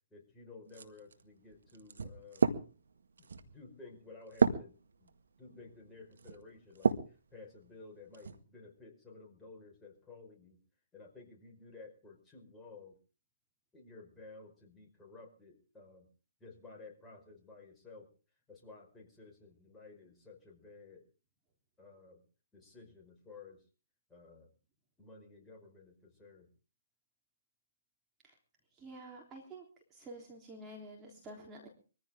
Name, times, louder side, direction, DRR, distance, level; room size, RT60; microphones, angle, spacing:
voice 1, 0.1-2.4 3.2-4.7 5.0-5.1 5.4-10.6 10.9-13.0 13.7-16.1 16.4-18.1 18.5-21.0 21.8-22.2 22.5-23.6 24.1-24.5 25.0-26.5, left 3 dB, 10° left, -1 dB, 5.2 m, -54 dB
sound 1, 0.7-7.2 7.7-8.4, right 5 dB, 70° right, 1.8 m, -34 dB
voice 2, 28.7-29.7 29.9-31.7, right 1 dB, 15° right, 0 dB, 3.6 m, -49 dB
23.0 x 15.0 x 3.7 m, 0.38 s
hypercardioid pair, 135°, 0 cm